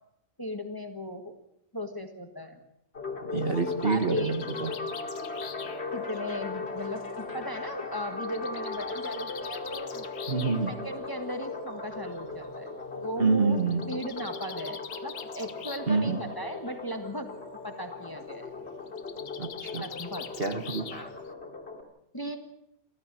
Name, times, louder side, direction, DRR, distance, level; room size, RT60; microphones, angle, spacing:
voice 1, 0.4-1.3 1.7-2.6 3.8-4.3 5.9-10.1 10.4-12.7 13.0-13.6 13.9-17.3 17.6-18.5 19.8-20.3 20.9-21.1 22.1-22.4, equal, 15° left, 6 dB, 1.6 m, -37 dB
sound 1, 2.9-21.8, left 3 dB, 45° left, 2.9 m, -38 dB
voice 2, 3.2-4.7 10.3-10.7 13.2-13.9 15.9-16.2 19.4-19.8 20.4-20.9, right 4 dB, 40° right, 7 dB, 1.6 m, -27 dB
Bird, 3.4-7.2 8.2-10.6 11.7-11.8 12.1-12.2 12.4-12.5 13.6-16.0 16.3-16.8 18.9-21.3, left 8 dB, 80° left, 1.5 m, -44 dB
29.0 x 13.5 x 7.6 m, 0.81 s
omnidirectional pair, 1.5 m